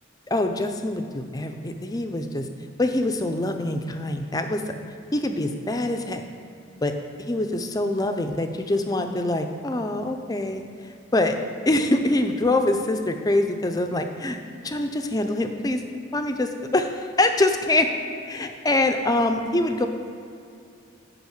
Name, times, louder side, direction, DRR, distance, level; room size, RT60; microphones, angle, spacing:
voice 1, 0.3-2.5 2.8-4.6 5.1-6.2 6.8-6.9 7.2-11.4 11.7-15.8 16.1-17.9 18.3-19.9, left 2 dB, 20° left, 6 dB, 0.4 m, -24 dB
8.2 x 5.4 x 6.5 m, 2.6 s
head